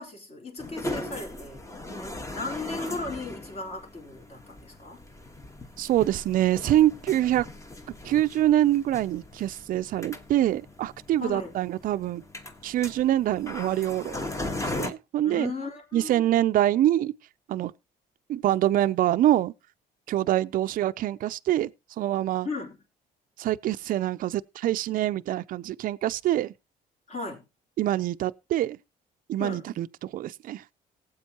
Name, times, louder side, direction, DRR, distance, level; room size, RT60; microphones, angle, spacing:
voice 1, 0.0-5.1 11.2-11.6 15.2-16.2 22.4-22.8 27.1-27.4 29.4-29.6, left 3 dB, 40° left, 3.9 m, -37 dB
sound 1, 0.6-14.9, left 2 dB, 20° left, 1.3 m, -39 dB
voice 2, 5.8-7.5 8.0-12.2 12.6-14.3 14.8-15.5 15.9-17.1 17.5-17.7 18.3-19.5 20.1-21.7 22.0-22.5 23.4-26.5 27.8-28.8 29.3-30.6, right 13 dB, 55° right, 0.5 m, -25 dB
18.5 x 7.9 x 2.9 m
cardioid pair, 110°, 17 cm